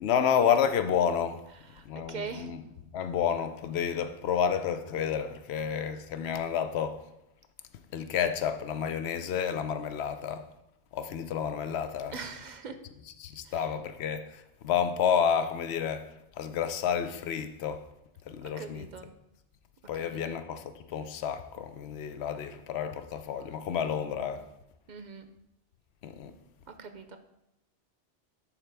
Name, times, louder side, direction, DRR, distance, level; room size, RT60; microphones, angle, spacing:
voice 1, 0.0-1.4 1.8-2.6 2.9-7.0 7.9-10.5 10.9-12.2 13.2-17.9 18.2-18.9 19.9-24.5 26.0-26.3, left 8 dB, 90° left, 0.8 m, -30 dB
voice 2, 1.7-2.5 12.1-12.8 13.4-13.6 18.6-19.1 19.9-20.2 24.9-25.3 26.7-27.2, right 5 dB, 55° right, 0.6 m, -41 dB
11.0 x 4.4 x 3.4 m
omnidirectional pair, 1.1 m